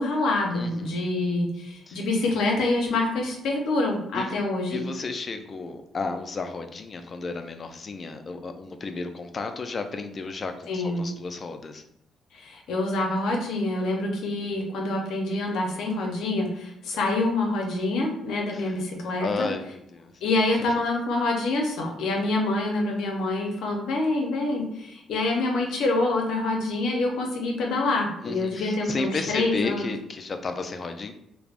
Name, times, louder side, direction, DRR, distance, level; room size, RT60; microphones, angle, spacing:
voice 1, 0.0-4.8 10.7-11.1 12.3-19.5 20.2-29.9, left 2 dB, 80° left, 1 dB, 0.6 m, -26 dB
voice 2, 0.5-1.1 1.9-2.0 4.1-4.4 4.7-11.8 14.2-14.7 18.5-18.8 19.2-20.1 20.7-20.8 28.2-31.1, left 4 dB, 40° left, 7 dB, 0.3 m, -33 dB
3.2 x 2.0 x 2.4 m, 0.80 s
cardioid pair, 90°, 0 cm